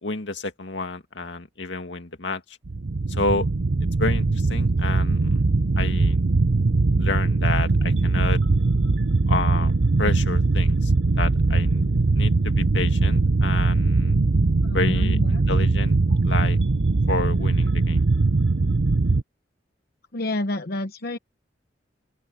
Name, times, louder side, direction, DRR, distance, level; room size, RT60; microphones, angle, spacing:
voice 1, 0.0-2.4 3.1-3.5 4.0-5.4 5.8-6.2 7.0-8.4 9.3-10.9 11.2-11.8 12.1-14.2 14.7-15.2 15.5-16.0 16.2-16.6 17.1-18.0, left 3 dB, 80° left, 2.2 m, -29 dB
sound 1, 2.7-19.2, right 3 dB, 85° right, 0.8 m, -21 dB
voice 2, 14.6-15.4 20.1-21.2, left 1 dB, 60° left, 1.0 m, -29 dB
open air
head